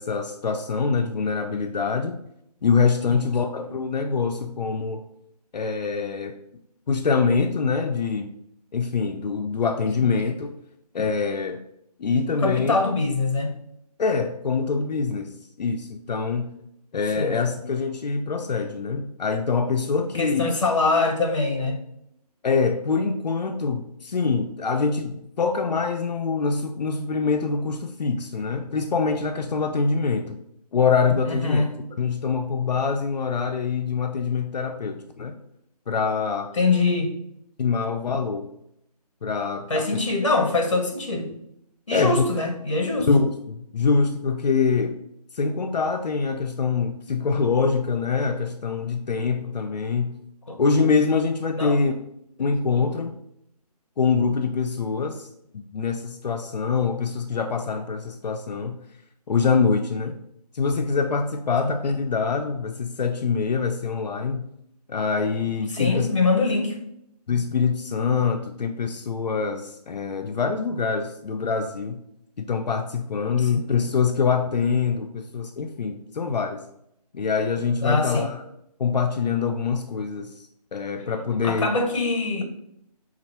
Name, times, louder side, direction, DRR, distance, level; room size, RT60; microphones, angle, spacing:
voice 1, 0.0-2.2 2.6-5.0 5.5-6.3 6.9-8.3 8.7-10.6 10.9-11.6 12.0-12.8 14.0-16.5 16.9-20.5 22.4-30.4 30.7-31.6 32.0-35.4 35.9-36.5 37.6-38.5 39.2-40.0 41.9-42.3 43.1-44.9 45.3-50.2 50.6-51.9 52.4-53.1 54.0-55.3 55.5-58.8 59.3-60.2 60.5-64.5 64.9-66.1 67.3-72.0 72.4-76.6 77.1-78.4 78.8-80.5 80.7-81.7, left 5 dB, 85° left, 4 dB, 0.5 m, -24 dB
voice 2, 12.4-13.5 17.2-17.3 20.1-21.8 31.2-31.7 36.5-37.1 39.7-41.3 41.9-43.1 50.5-50.6 51.6-51.8 61.6-61.7 65.7-66.7 73.4-73.7 77.8-78.3 81.4-82.4, left 3 dB, 50° left, 3 dB, 0.9 m, -23 dB
4.3 x 2.5 x 4.1 m, 0.76 s
figure-of-eight pair, 175°, 21 cm